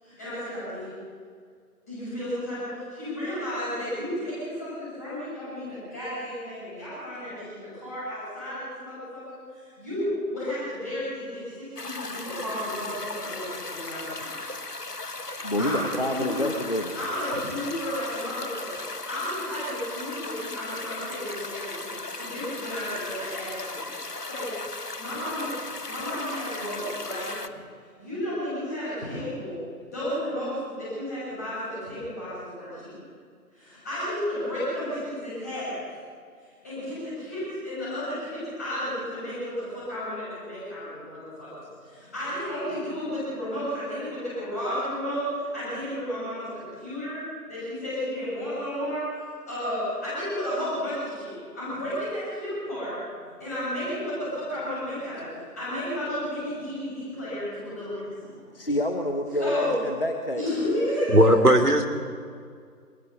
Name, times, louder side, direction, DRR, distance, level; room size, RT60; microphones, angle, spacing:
voice 1, 0.0-0.9 1.9-14.4 15.6-16.5 16.9-21.9 22.2-23.9 24.3-24.5 25.0-25.5 25.9-27.5 28.0-29.6 29.9-32.9 33.5-35.8 36.4-41.5 41.8-47.2 47.5-49.0 49.5-52.9 53.4-55.3 55.5-58.3 59.4-59.7 60.3-61.2, equal, 10° left, -11 dB, 6.8 m, -32 dB
sound 1, 11.8-27.5, left 2 dB, 75° left, 1.6 m, -37 dB
voice 2, 15.4-16.9 58.5-60.4, left 1 dB, 35° left, 4 dB, 1.4 m, -27 dB
voice 3, 61.1-61.9, right 1 dB, 75° right, 5 dB, 3.2 m, -17 dB
25.5 x 20.0 x 6.9 m, 2.1 s
figure-of-eight pair, 170°, 47 cm